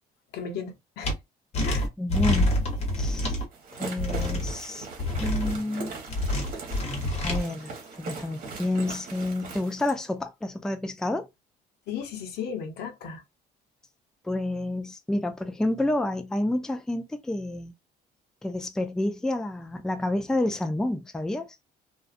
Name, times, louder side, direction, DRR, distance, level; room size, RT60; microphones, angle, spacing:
voice 1, 0.3-1.1 1.6-1.9 11.9-13.2, left 6 dB, 75° left, 0.8 m, -35 dB
sound 1, 1.0-1.1 1.5-3.4 4.0-4.5 5.0-5.6 6.1-7.4, left 1 dB, 40° left, 1.1 m, -26 dB
voice 2, 2.0-2.6 3.0-3.4 3.7-4.9 5.2-5.9 7.2-11.3 14.2-17.7 18.4-21.5, left 1 dB, 5° left, 0.4 m, -29 dB
sound 2, 3.5-10.0, right 4 dB, 55° right, 1.1 m, -40 dB
2.4 x 2.3 x 2.4 m
cardioid pair, 110°, 17 cm